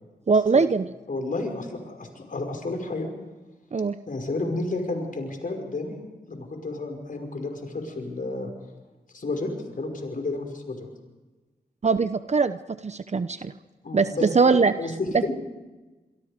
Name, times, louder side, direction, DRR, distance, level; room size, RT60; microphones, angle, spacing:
voice 1, 0.3-0.9 3.7-4.0 11.8-12.6 12.8-13.5 13.9-14.7 15.1-15.3, right 4 dB, 45° right, 11 dB, 0.9 m, -21 dB
voice 2, 1.1-3.1 4.1-6.0 6.3-8.5 9.1-9.5 9.8-10.9 13.8-15.3, left 2 dB, 55° left, 5 dB, 5.6 m, -31 dB
25.5 x 24.0 x 5.1 m, 1.2 s
cardioid pair, 60°, 16 cm